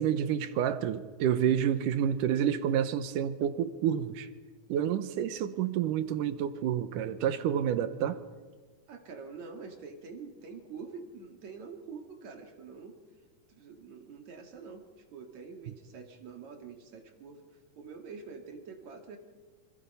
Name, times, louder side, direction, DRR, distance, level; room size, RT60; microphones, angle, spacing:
voice 1, 0.0-4.3 4.7-8.2, right 9 dB, 70° right, 11 dB, 2.3 m, -29 dB
voice 2, 8.9-13.0 13.5-17.4 17.7-19.2, right 5 dB, 55° right, 3 dB, 3.3 m, -46 dB
28.5 x 26.0 x 5.5 m, 1.4 s
omnidirectional pair, 4.2 m